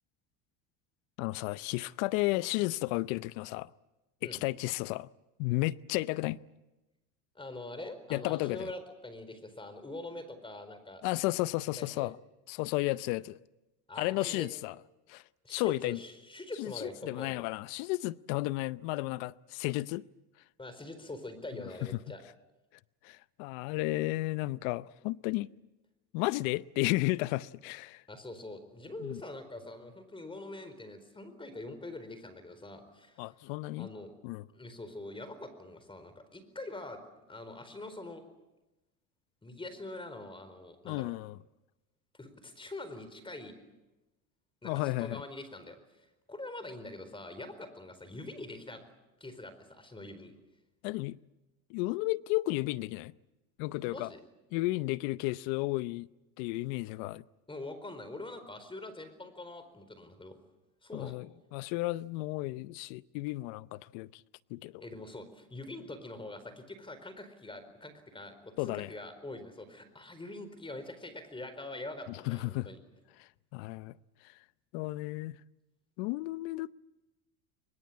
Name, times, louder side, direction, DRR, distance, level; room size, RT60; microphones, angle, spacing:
voice 1, 1.2-3.7 4.2-5.1 5.4-6.4 8.1-8.7 11.0-12.2 12.5-13.4 14.0-14.7 15.1-15.2 15.5-16.0 16.6-20.1 23.0-25.5 26.1-28.0 29.0-29.2 33.2-33.9 34.2-34.4 40.8-41.4 44.6-45.2 50.8-51.2 51.7-53.1 53.6-54.1 54.5-56.1 56.4-57.2 60.9-61.3 61.5-64.2 64.5-64.8 68.6-68.9 72.3-72.7 73.5-74.0 74.7-75.4 76.0-76.7, left 20 dB, 70° left, 0.8 m, -33 dB
voice 2, 7.3-11.0 11.8-12.1 13.9-14.5 15.4-17.5 20.6-22.2 28.1-33.3 33.8-34.1 34.5-37.0 37.3-38.2 39.4-41.1 42.2-43.6 44.6-48.8 49.2-50.3 53.8-54.2 57.5-60.4 60.8-61.2 64.8-72.8, left 2 dB, 10° left, 4.4 m, -44 dB
23.0 x 22.5 x 8.6 m
supercardioid pair, 105°, 41 cm